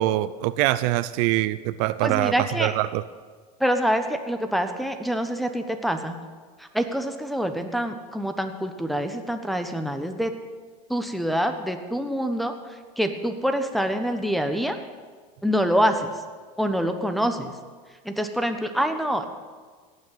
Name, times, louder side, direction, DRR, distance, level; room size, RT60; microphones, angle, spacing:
voice 1, 0.0-3.0, right 15 dB, 65° right, 15 dB, 0.6 m, -24 dB
voice 2, 2.0-2.7 3.6-6.1 6.6-10.3 10.9-12.5 13.0-14.8 15.4-16.1 16.6-17.5 18.0-19.2, equal, ahead, 6 dB, 1.2 m, -25 dB
17.5 x 6.4 x 9.1 m, 1.5 s
supercardioid pair, 120°, 20 cm